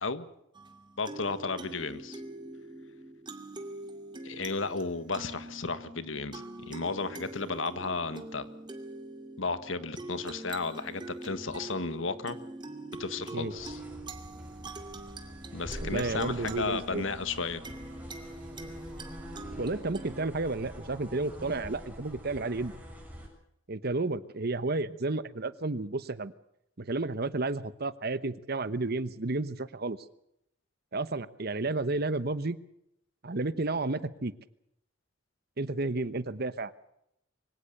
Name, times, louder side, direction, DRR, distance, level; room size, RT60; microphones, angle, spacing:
sound 1, 0.5-20.3, right 2 dB, 25° right, 2.4 m, -44 dB
voice 1, 1.0-2.2 4.2-8.4 9.4-12.4 13.0-13.8 15.5-17.6, left 4 dB, 80° left, 12 dB, 1.7 m, -34 dB
sound 2, 13.5-23.3, equal, 10° right, 7.0 m, -45 dB
voice 2, 15.8-17.0 19.6-22.8 23.7-26.3 26.8-30.0 30.9-32.6 33.2-34.3 35.6-36.9, right 2 dB, 55° right, 14 dB, 1.1 m, -32 dB
24.0 x 17.5 x 6.8 m, 0.77 s
head